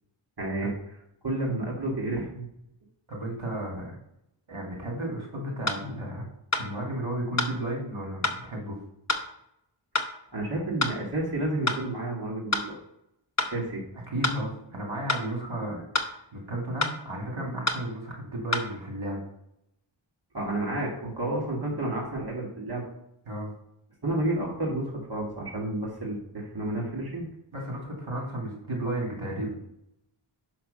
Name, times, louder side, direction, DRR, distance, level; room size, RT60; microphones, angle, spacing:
voice 1, 0.4-0.7 1.2-2.5 10.3-12.8 13.5-13.8 20.3-22.9 24.0-27.3, right 1 dB, 50° right, -3 dB, 1.9 m, -30 dB
voice 2, 3.1-4.0 4.5-6.2 6.6-8.8 14.1-19.2 23.3-23.5 27.5-29.6, right 1 dB, 70° right, -1 dB, 2.4 m, -33 dB
sound 1, 5.7-5.8 6.5-6.7 7.4-7.5 8.2-8.4 9.1-9.3 9.9-10.1 10.8-11.0 11.7-11.8 12.5-12.7 13.4-13.5 14.2-14.4 15.1-15.3 15.9-16.1 16.8-17.0 17.7-17.8 18.5-18.7, left 2 dB, 35° left, 1.0 m, -27 dB
6.2 x 5.9 x 5.4 m, 0.78 s
wide cardioid pair, 60°, 50 cm